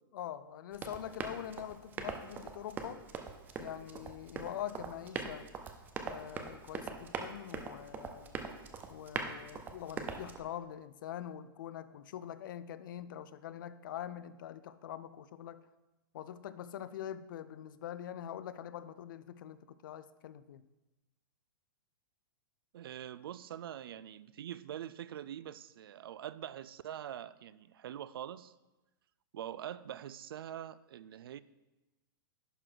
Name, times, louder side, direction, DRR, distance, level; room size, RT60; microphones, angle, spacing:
voice 1, 0.1-3.0 3.6-5.5 6.0-8.4 8.9-15.7 16.1-20.6, left 10 dB, 65° left, 0.4 m, -44 dB
Run, 0.7-10.4, right 5 dB, 15° right, 0.5 m, -42 dB
voice 2, 22.7-28.5 29.3-31.4, right 10 dB, 85° right, 0.4 m, -44 dB
11.0 x 3.9 x 4.6 m
hypercardioid pair, 155°, 12 cm